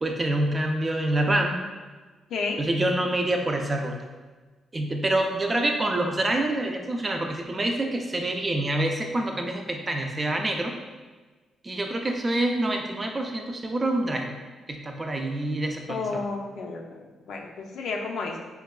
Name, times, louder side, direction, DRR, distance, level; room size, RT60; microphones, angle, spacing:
voice 1, 0.0-1.5 2.6-3.9 4.7-10.7 11.6-14.4 14.7-16.2, right 1 dB, 25° right, 3 dB, 0.4 m, -26 dB
voice 2, 2.3-2.6 15.9-18.4, left 4 dB, 70° left, 1 dB, 0.4 m, -32 dB
4.5 x 2.2 x 2.3 m, 1.3 s
cardioid pair, 90°, 0 cm